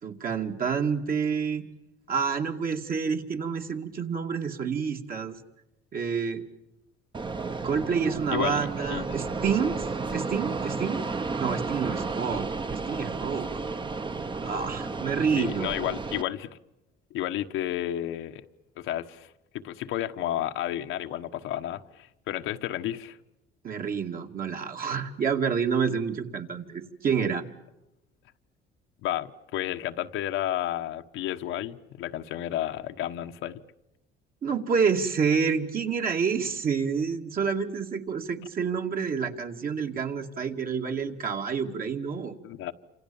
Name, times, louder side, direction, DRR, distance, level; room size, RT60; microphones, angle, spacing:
voice 1, 0.0-1.6 2.1-5.4 5.9-6.4 7.6-9.9 10.1-11.0 11.4-13.5 14.4-15.7 23.6-27.4 34.4-42.4, right 6 dB, 45° right, 2.6 m, -28 dB
Fixed-wing aircraft airplane, 7.1-16.2, right 4 dB, 25° right, 1.1 m, -33 dB
voice 2, 8.3-9.2 15.4-16.6 17.1-18.4 18.8-23.2 29.0-33.6 42.4-42.7, left 12 dB, 80° left, 1.3 m, -32 dB
29.0 x 27.0 x 7.2 m
cardioid pair, 115°, 20 cm